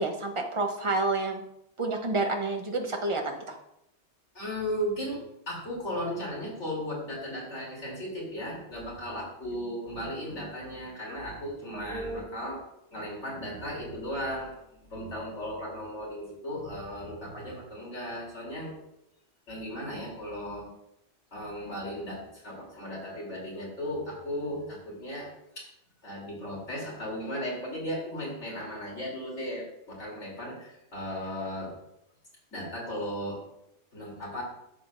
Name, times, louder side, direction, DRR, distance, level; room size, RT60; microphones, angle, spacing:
voice 1, 0.0-1.4 1.8-3.6 11.7-12.5, right 2 dB, 30° right, 3 dB, 1.0 m, -30 dB
voice 2, 4.3-5.2 5.5-12.6 12.9-14.6 14.8-18.7 19.5-20.7 21.3-25.7 26.0-31.7 32.5-33.4 33.9-34.4, equal, 80° left, -5 dB, 3.8 m, -36 dB
11.0 x 7.8 x 2.6 m, 0.82 s
omnidirectional pair, 1.2 m